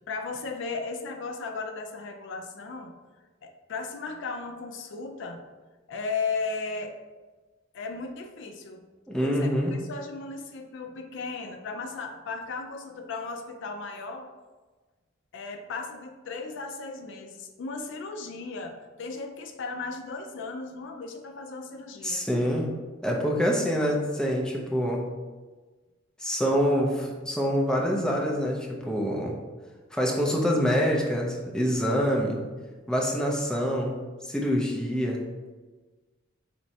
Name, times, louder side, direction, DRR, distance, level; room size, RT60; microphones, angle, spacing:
voice 1, 0.1-2.9 3.4-5.4 5.9-6.9 7.7-8.8 9.2-9.5 9.9-14.3 15.3-22.2, left 4 dB, 65° left, 5 dB, 0.4 m, -36 dB
voice 2, 9.1-9.7 22.0-22.7 23.0-25.0 26.2-29.3 29.9-32.4 32.9-34.0 34.2-35.2, equal, 5° left, -2 dB, 0.5 m, -26 dB
4.4 x 3.0 x 2.7 m, 1.3 s
head